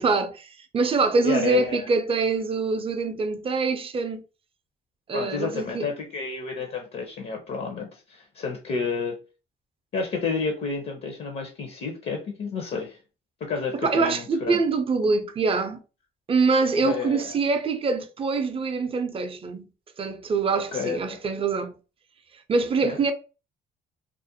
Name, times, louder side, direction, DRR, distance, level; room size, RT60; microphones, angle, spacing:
voice 1, 0.0-4.2 5.1-5.9 13.8-15.8 16.3-19.7 20.0-21.8 22.5-23.1, right 4 dB, 30° right, 0.4 m, -24 dB
voice 2, 1.2-1.9 5.1-9.2 9.9-13.0 13.4-14.6 15.0-15.1 16.8-17.3 20.5-21.2 22.8-23.0, left 5 dB, 55° left, 0.6 m, -30 dB
2.4 x 2.0 x 2.7 m
cardioid pair, 90°, 20 cm